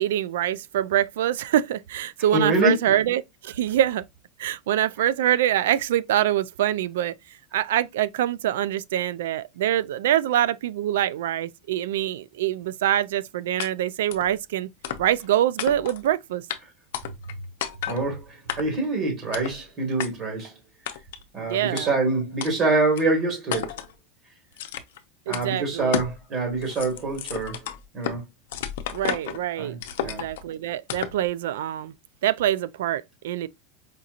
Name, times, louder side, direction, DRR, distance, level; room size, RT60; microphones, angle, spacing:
voice 1, 0.0-4.0 4.4-7.2 7.5-14.7 15.0-16.4 21.4-21.9 25.3-26.0 28.9-31.9 32.2-33.5, right 12 dB, 80° right, 0.3 m, -25 dB
voice 2, 2.3-2.8 17.9-20.6 21.3-23.7 25.3-27.7 27.9-28.2 29.5-30.2, right 3 dB, 30° right, 1.6 m, -25 dB
sound 1, 13.6-13.7 14.1-14.3 14.8-15.3 15.6-16.1 16.5-16.6 16.9-17.3 17.6-18.0 18.5-18.9 19.3-19.6 20.0-20.1 20.9-21.2 21.8-21.9 22.4-22.5 23.0-23.1 23.5-23.9 24.6-25.0 25.3-25.5 25.9-26.2 26.5-28.2 28.5-29.4 29.8-30.4 30.9-31.2, left 10 dB, 75° left, 0.6 m, -32 dB
5.0 x 2.8 x 2.4 m
supercardioid pair, 165°, 0 cm